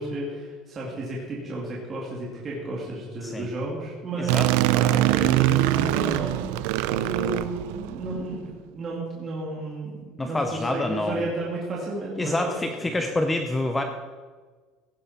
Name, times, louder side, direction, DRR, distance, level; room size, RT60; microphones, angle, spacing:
voice 1, 0.0-6.4 6.9-13.1, right 2 dB, 25° right, -5 dB, 2.4 m, -33 dB
voice 2, 4.1-4.5 10.2-11.3 12.2-13.8, left 2 dB, 10° left, 5 dB, 0.6 m, -27 dB
sound 1, 4.3-8.2, right 15 dB, 80° right, 0.5 m, -23 dB
16.5 x 10.5 x 4.3 m, 1.5 s
cardioid pair, 175°, 0 cm